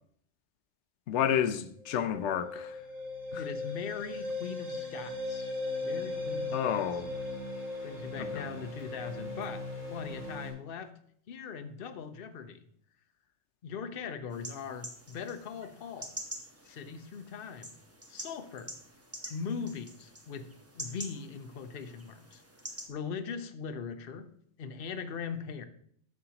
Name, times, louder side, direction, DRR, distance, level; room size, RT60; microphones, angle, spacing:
voice 1, 1.1-2.8 3.3-3.4 6.5-7.1 8.2-8.5, left 9 dB, 80° left, 0.9 m, -30 dB
sound 1, 1.8-10.5, left 2 dB, 90° right, 3.8 m, -38 dB
voice 2, 3.4-5.5 5.8-6.9 7.8-10.9 11.3-12.6 13.6-16.2 16.6-17.7 18.1-18.7 19.3-22.4 22.9-24.3 24.6-25.6, left 6 dB, 60° left, 0.9 m, -40 dB
sound 2, 14.3-22.9, right 1 dB, 15° right, 0.9 m, -46 dB
11.5 x 7.3 x 2.9 m
omnidirectional pair, 1.2 m